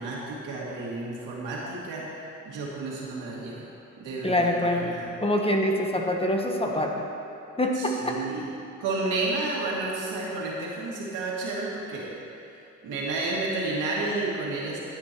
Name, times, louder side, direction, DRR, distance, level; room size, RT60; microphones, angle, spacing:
voice 1, 0.0-3.7 4.0-5.1 7.7-8.5 8.8-12.1 12.8-14.8, right 2 dB, 90° right, -5 dB, 2.4 m, -31 dB
voice 2, 4.2-4.8 5.2-7.0 7.6-8.2, left 1 dB, 20° left, 1 dB, 1.1 m, -25 dB
13.0 x 9.7 x 3.1 m, 2.6 s
cardioid pair, 90°, 30 cm